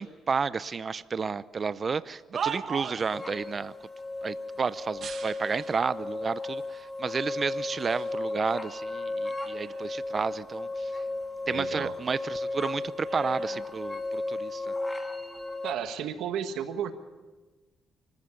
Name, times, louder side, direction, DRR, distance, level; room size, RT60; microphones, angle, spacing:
voice 1, 0.0-3.7 4.2-10.9 11.5-14.8, right 5 dB, 40° right, 16 dB, 0.6 m, -32 dB
sound 1, 1.9-3.2 4.9-5.9 6.6-6.7 7.5-8.2 8.6-10.1 10.4-12.1 12.3-14.5 15.2-15.5, right 7 dB, 60° right, 1.4 m, -41 dB
sound 2, 3.1-15.7, left 2 dB, 15° left, 2.2 m, -35 dB
voice 2, 11.5-11.9 15.6-16.9, right 9 dB, 85° right, 8 dB, 1.5 m, -33 dB
25.0 x 14.5 x 7.2 m, 1.3 s
cardioid pair, 90°, 0 cm